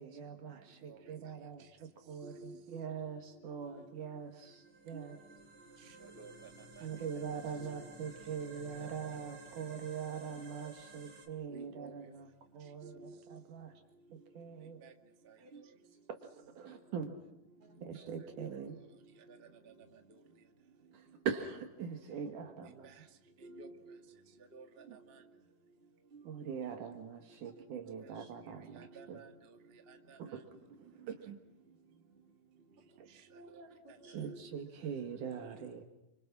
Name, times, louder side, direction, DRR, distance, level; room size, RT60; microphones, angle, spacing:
voice 1, 0.0-5.2 6.8-12.3 12.5-13.7 14.1-14.8 16.1-16.2 16.6-17.2 17.8-18.8 20.9-22.9 24.9-25.0 26.2-29.2 30.2-30.5 30.8-31.4 34.1-35.8, right 7 dB, 75° right, 5 dB, 3.2 m, -42 dB
voice 2, 2.2-2.8 4.9-5.1 5.8-6.5 6.8-7.2 7.6-7.9 11.5-11.9 12.8-13.4 14.8-14.9 15.2-15.6 17.6-17.8 18.2-18.8 19.3-19.7 22.8-22.9 23.4-24.0 24.5-25.2 26.1-26.2 28.0-28.4 28.7-29.3 29.9-30.4 34.0-34.6, right 3 dB, 20° right, 5 dB, 1.7 m, -53 dB
sound 1, 4.3-11.3, right 3 dB, 40° right, 4.6 m, -55 dB
voice 3, 17.6-18.1 22.0-22.5 27.4-27.5 27.8-28.9 32.8-34.3, right 1 dB, 60° right, 3 dB, 6.0 m, -60 dB
30.0 x 26.0 x 6.1 m, 0.88 s
omnidirectional pair, 3.6 m